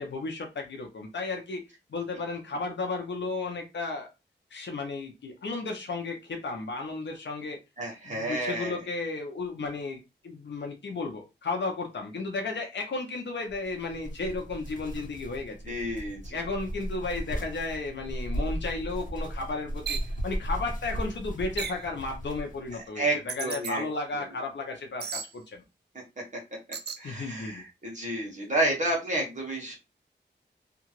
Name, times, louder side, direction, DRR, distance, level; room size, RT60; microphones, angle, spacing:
voice 1, 0.0-1.6 1.9-4.1 4.5-7.6 8.0-15.7 16.3-20.0 20.2-25.6 27.0-27.6, left 3 dB, 70° left, 2 dB, 0.7 m, -34 dB
voice 2, 7.8-8.8 15.7-16.4 22.7-23.8 27.0-29.8, right 1 dB, 40° right, -2 dB, 1.2 m, -30 dB
sound 1, 13.5-22.8, equal, 45° left, 1.1 m, -36 dB
sound 2, 19.9-20.1 21.6-21.9 23.3-23.7 25.0-25.3 26.7-27.0, right 6 dB, 60° right, 0.4 m, -35 dB
2.9 x 2.4 x 2.9 m, 0.25 s
wide cardioid pair, 65°, 19 cm